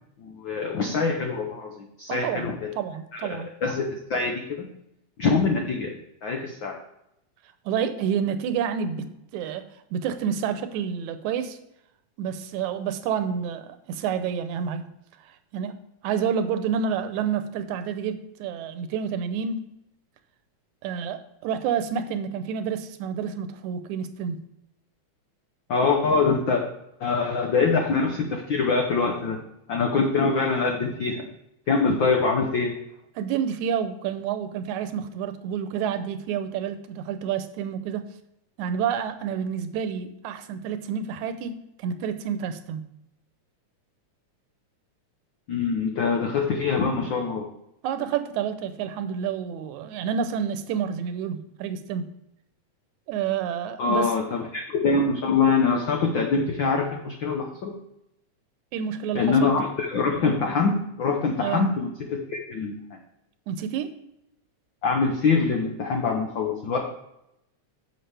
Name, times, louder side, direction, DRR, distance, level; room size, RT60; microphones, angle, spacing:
voice 1, 0.2-2.7 3.1-4.7 5.2-5.9 6.2-6.7 25.7-26.6 27.0-29.4 29.7-31.2 31.7-32.7 45.5-47.4 53.8-57.7 59.1-61.9 62.3-62.7 64.8-66.8, left 4 dB, 80° left, 2 dB, 1.0 m, -24 dB
voice 2, 2.1-2.5 2.8-3.5 7.7-9.1 9.3-11.6 12.2-14.8 15.2-15.8 16.0-19.6 20.8-24.4 33.2-38.0 38.6-42.8 47.8-52.1 53.1-54.1 58.7-59.5 61.4-61.6 63.5-63.9, right 7 dB, 75° right, 10 dB, 2.0 m, -29 dB
10.0 x 7.1 x 3.3 m, 0.82 s
omnidirectional pair, 3.5 m